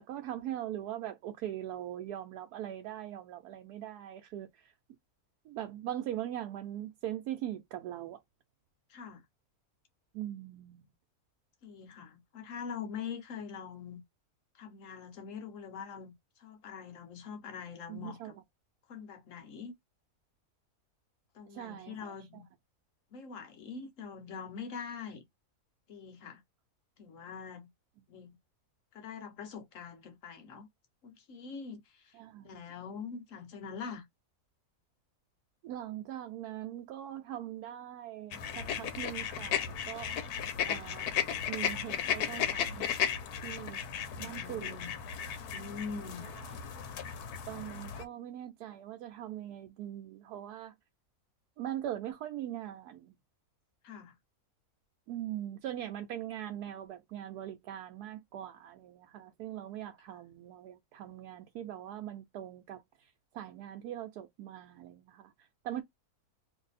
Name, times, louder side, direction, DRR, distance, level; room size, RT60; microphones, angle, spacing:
voice 1, 0.0-4.7 5.5-8.2 10.1-10.9 17.9-18.3 21.5-22.4 32.1-32.7 35.6-40.2 40.6-41.1 41.5-43.2 43.4-43.8 44.2-44.8 45.9-46.1 46.3-46.5 47.5-50.7 51.6-53.1 55.1-65.3 65.6-65.8, right 12 dB, 90° right, 1.1 m, -41 dB
voice 2, 8.9-9.2 11.6-14.0 14.6-16.1 16.4-18.3 18.9-19.7 21.3-22.5 23.1-25.2 25.9-26.4 27.0-27.7 28.1-28.4 28.9-30.7 31.0-32.2 32.4-34.0 43.8-44.9 45.5-46.3 53.8-54.1 60.1-60.2, left 6 dB, 60° left, 1.2 m, -44 dB
sound 1, 38.3-48.0, left 8 dB, 90° left, 1.2 m, -35 dB
2.6 x 2.6 x 3.9 m
omnidirectional pair, 1.6 m